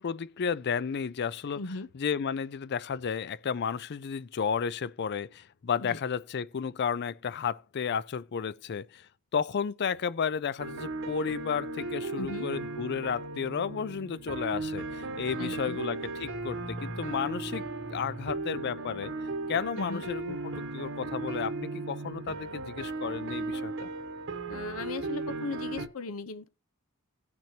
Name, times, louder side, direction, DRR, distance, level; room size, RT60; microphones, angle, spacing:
voice 1, 0.0-1.6 1.9-17.6 17.9-19.1 19.5-23.9, left 6 dB, 50° left, 0.4 m, -33 dB
voice 2, 1.6-1.9 5.8-6.0 12.2-12.5 15.4-15.8 19.7-20.0 24.5-26.5, left 3 dB, 75° left, 0.8 m, -37 dB
sound 1, 10.6-25.9, right 2 dB, 65° right, 1.1 m, -36 dB
17.5 x 6.1 x 2.8 m
head